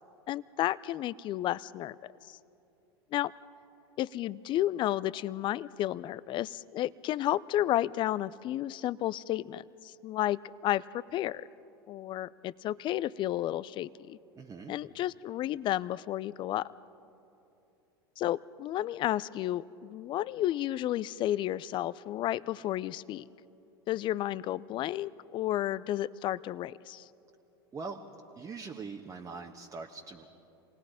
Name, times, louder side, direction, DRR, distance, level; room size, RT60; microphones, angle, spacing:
voice 1, 0.3-2.4 3.1-3.3 4.0-11.5 11.9-14.2 14.7-16.7 18.2-23.3 23.9-27.1, left 13 dB, 40° left, 20 dB, 0.5 m, -32 dB
voice 2, 14.3-14.8 27.7-28.0 28.3-30.3, right 4 dB, 25° right, 2 dB, 1.3 m, -42 dB
27.5 x 19.5 x 5.0 m, 2.8 s
hypercardioid pair, 90°, 13 cm